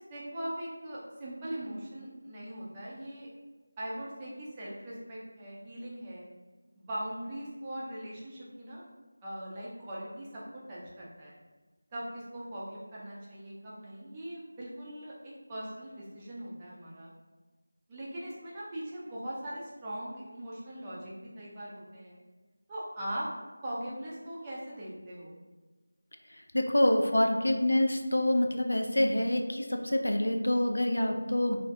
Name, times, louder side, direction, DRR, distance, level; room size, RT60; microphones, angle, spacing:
voice 1, 0.0-3.3 3.8-6.3 6.8-8.8 9.2-11.4 11.9-17.1 17.9-22.2 22.7-23.3 23.6-25.4, right 1 dB, 15° right, -7 dB, 0.4 m, -40 dB
voice 2, 26.5-31.6, left 1 dB, 85° left, 3 dB, 0.3 m, -26 dB
2.2 x 2.1 x 2.6 m, 1.3 s
figure-of-eight pair, 170°, 0 cm